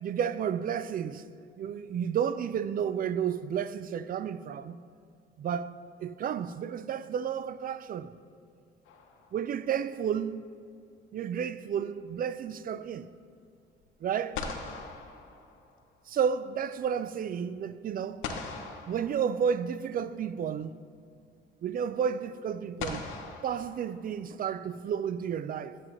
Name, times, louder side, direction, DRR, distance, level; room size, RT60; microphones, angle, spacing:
voice 1, 0.0-1.2 1.6-4.8 5.4-8.1 9.3-10.4 11.1-13.1 14.0-14.4 16.1-18.3 18.9-20.8 21.6-23.1 23.4-25.8, right 8 dB, 45° right, 0.4 m, -31 dB
sound 1, 8.9-9.7 13.8-13.9 14.3-16.1 18.2-19.8 21.2-21.3 22.8-24.4, left 5 dB, 90° left, 0.8 m, -41 dB
13.0 x 7.8 x 3.0 m
cardioid pair, 90°, 20 cm